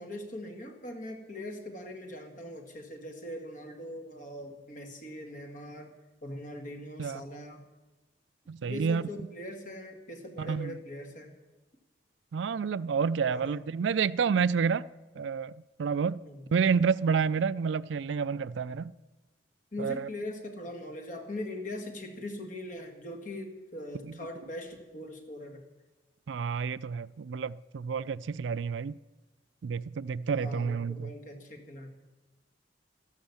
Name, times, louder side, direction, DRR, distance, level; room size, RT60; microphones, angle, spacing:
voice 1, 0.0-5.9 6.2-7.6 8.6-11.4 13.2-13.6 16.3-16.4 19.7-25.6 30.3-31.9, left 1 dB, 45° left, 1.9 m, -41 dB
voice 2, 8.5-9.0 10.4-10.8 12.3-14.8 15.2-15.5 15.8-16.2 16.5-18.9 19.8-20.1 24.0-24.1 26.3-29.0 29.6-31.1, right 6 dB, 75° right, 0.4 m, -29 dB
13.5 x 11.5 x 7.1 m
head